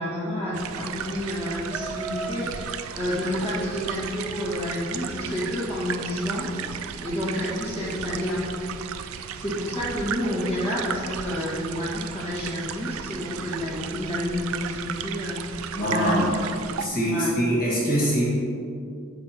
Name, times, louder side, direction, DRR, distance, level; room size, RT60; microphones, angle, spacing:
voice 1, 0.0-6.5 6.8-8.4 9.0-16.4 17.1-17.3, left 1 dB, 25° left, -9 dB, 1.7 m, -29 dB
sound 1, 0.5-16.9, right 8 dB, 75° right, 0.3 m, -35 dB
Laughter, 1.6-4.9, right 3 dB, 5° right, 0.7 m, -39 dB
voice 2, 15.7-16.3 16.8-18.2, equal, 40° left, -6 dB, 1.7 m, -23 dB
9.2 x 6.6 x 2.9 m, 2.5 s
head